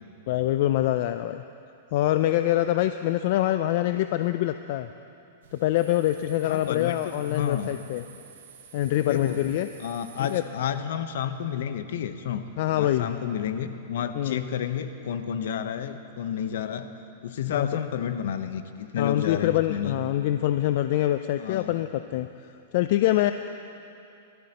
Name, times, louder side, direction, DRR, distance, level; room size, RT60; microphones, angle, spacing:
voice 1, 0.3-1.4 1.9-4.9 5.5-8.0 8.7-9.7 10.3-10.4 12.6-13.1 14.2-14.4 17.5-17.7 19.0-22.3 22.7-23.3, left 14 dB, 55° left, 9 dB, 0.4 m, -24 dB
sound 1, 5.4-10.4, right 7 dB, 80° right, 2.1 m, -50 dB
voice 2, 6.5-7.0 7.2-7.7 9.0-9.5 9.8-12.5 12.7-16.9 17.2-20.0 21.4-21.8, left 8 dB, 70° left, 9 dB, 0.9 m, -31 dB
22.5 x 13.5 x 3.0 m, 2.7 s
hypercardioid pair, 140°, 0 cm